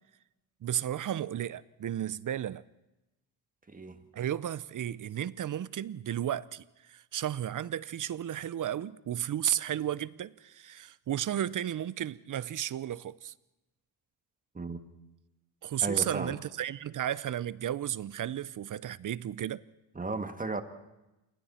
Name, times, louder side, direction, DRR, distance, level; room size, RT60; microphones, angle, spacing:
voice 1, 0.6-2.6 4.1-13.3 15.6-19.6, right 11 dB, 45° right, 0.6 m, -33 dB
voice 2, 3.7-4.0 14.5-14.8 15.8-16.3 20.0-20.6, right 3 dB, 20° right, 1.9 m, -34 dB
28.0 x 22.5 x 4.4 m
cardioid pair, 90°, 45 cm